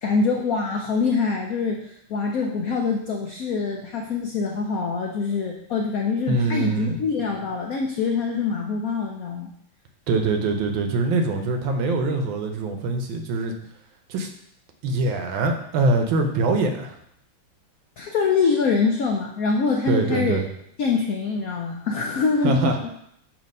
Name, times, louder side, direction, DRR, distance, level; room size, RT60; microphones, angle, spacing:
voice 1, 0.0-9.5 18.0-20.4 20.8-22.9, left 4 dB, 85° left, 1 dB, 0.7 m, -24 dB
voice 2, 6.3-7.0 10.1-13.5 14.1-14.3 14.8-17.0 19.9-20.5 22.4-22.8, right 3 dB, 70° right, 5 dB, 1.4 m, -23 dB
7.4 x 2.9 x 5.3 m, 0.74 s
omnidirectional pair, 2.3 m